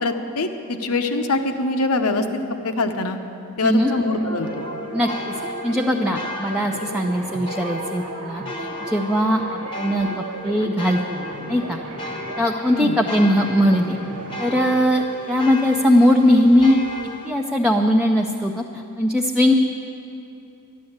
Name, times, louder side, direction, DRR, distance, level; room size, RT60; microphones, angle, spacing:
voice 1, 0.0-2.2 2.6-3.2 3.6-4.7 12.7-13.0, left 2 dB, 90° left, 7 dB, 1.0 m, -23 dB
voice 2, 3.6-3.9 4.9-5.3 5.6-11.8 12.4-14.0 14.4-16.8 17.2-19.5, equal, 5° right, 1 dB, 0.5 m, -20 dB
sound 1, 3.9-14.8, right 2 dB, 70° right, 1.3 m, -35 dB
sound 2, 4.4-17.3, left 1 dB, 20° left, 0.9 m, -35 dB
12.5 x 10.5 x 7.9 m, 2.9 s
head